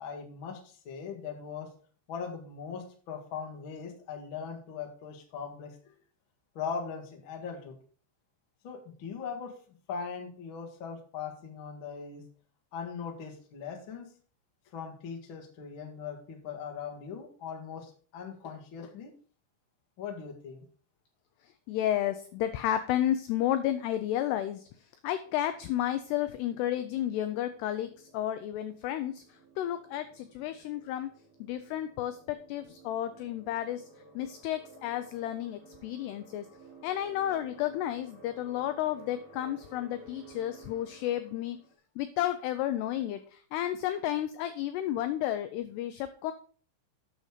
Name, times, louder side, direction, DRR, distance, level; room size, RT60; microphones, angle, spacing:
voice 1, 0.0-1.7 2.1-5.9 6.5-7.8 8.6-9.5 9.9-12.2 12.7-14.1 14.7-19.1 20.0-20.6, left 6 dB, 60° left, 2 dB, 1.3 m, -40 dB
voice 2, 21.7-24.7 25.0-31.1 31.4-33.9 34.2-36.5 36.8-41.6 42.0-46.3, left 12 dB, 85° left, 10 dB, 2.4 m, -32 dB
sound 1, 25.2-41.8, right 2 dB, 55° right, 4.3 m, -55 dB
9.2 x 6.5 x 5.0 m, 0.43 s
omnidirectional pair, 5.4 m